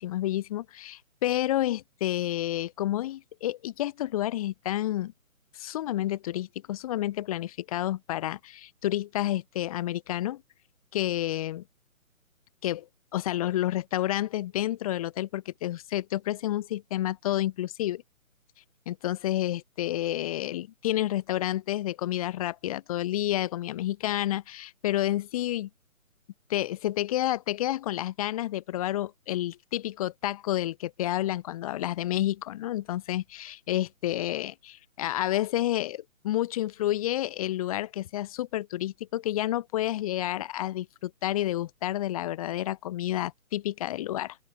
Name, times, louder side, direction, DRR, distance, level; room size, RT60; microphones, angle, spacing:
voice 1, 0.0-5.1 5.5-10.4 10.9-11.6 12.6-12.9 13.1-18.0 18.9-25.7 26.5-44.4, left 14 dB, 25° left, 2.5 m, -30 dB
open air
figure-of-eight pair, 145°, 41 cm